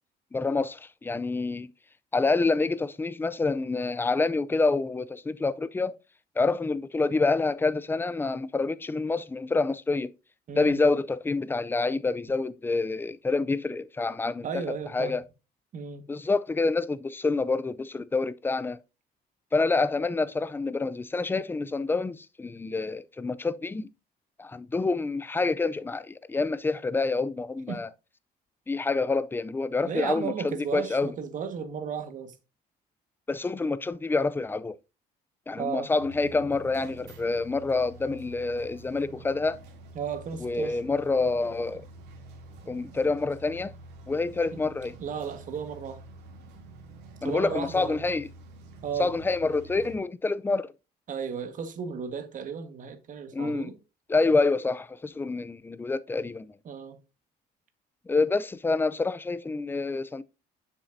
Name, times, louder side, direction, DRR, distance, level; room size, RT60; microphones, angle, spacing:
voice 1, 0.3-1.7 2.1-5.9 6.4-10.1 10.6-14.6 14.9-15.2 16.1-18.8 19.5-23.9 24.4-27.9 28.7-31.1 33.3-34.8 35.5-39.6 40.4-41.8 42.7-43.7 44.1-44.9 47.2-48.3 49.0-50.7 53.3-53.7 54.1-56.5 58.1-60.2, left 3 dB, 10° left, 0.4 m, -27 dB
voice 2, 10.5-10.9 14.4-15.2 15.7-16.1 27.7-27.8 29.8-32.3 35.6-35.9 39.9-40.8 44.5-44.6 45.0-46.0 47.2-48.0 48.8-49.1 51.1-53.8 56.6-57.0, right 6 dB, 50° right, 1.5 m, -34 dB
sound 1, 36.0-50.0, right 2 dB, 85° right, 2.8 m, -48 dB
8.8 x 7.1 x 2.7 m
cardioid pair, 110°, 17 cm